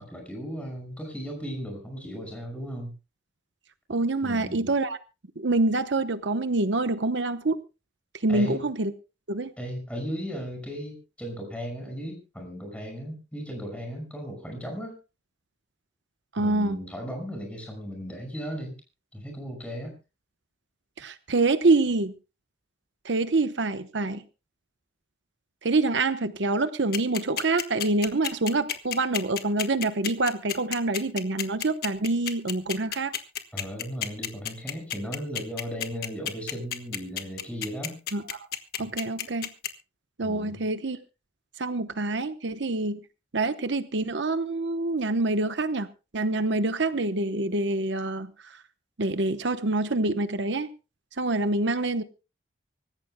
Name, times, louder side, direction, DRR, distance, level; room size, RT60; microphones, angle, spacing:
voice 1, 0.0-2.9 4.2-4.8 8.3-8.6 9.6-15.0 16.4-18.7 19.1-20.0 33.5-38.0 40.2-40.6, equal, 5° left, 3 dB, 5.6 m, -36 dB
voice 2, 3.9-5.0 5.4-7.6 8.2-8.9 9.3-9.5 16.3-16.8 21.0-22.1 23.0-24.2 25.6-33.1 38.1-38.2 38.8-39.5 40.2-41.0 41.6-43.0 43.3-45.9 46.1-48.6 49.0-50.7 51.2-52.0, right 2 dB, 70° right, 11 dB, 0.9 m, -26 dB
sound 1, 26.9-39.7, left 10 dB, 50° left, 1.4 m, -30 dB
25.0 x 14.5 x 2.2 m, 0.30 s
head